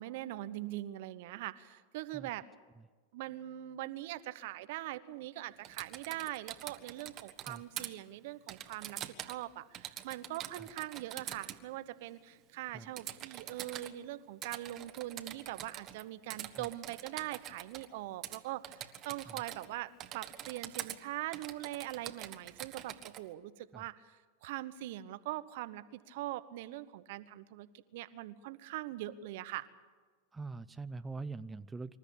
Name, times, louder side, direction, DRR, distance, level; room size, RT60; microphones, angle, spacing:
voice 1, 0.0-2.4 3.1-27.7 27.9-29.7, right 15 dB, 65° right, 14 dB, 1.1 m, -42 dB
Typing, 5.6-7.9 8.5-9.4 9.7-11.6 13.0-13.9 14.4-16.0 16.3-17.9 18.2-18.4 18.6-19.7 20.0-21.0 21.3-23.2, right 12 dB, 40° right, 1.6 m, -45 dB
voice 2, 30.3-32.0, right 3 dB, 15° right, 12 dB, 0.6 m, -44 dB
26.0 x 13.0 x 8.5 m, 1.4 s
hypercardioid pair, 100°, 0 cm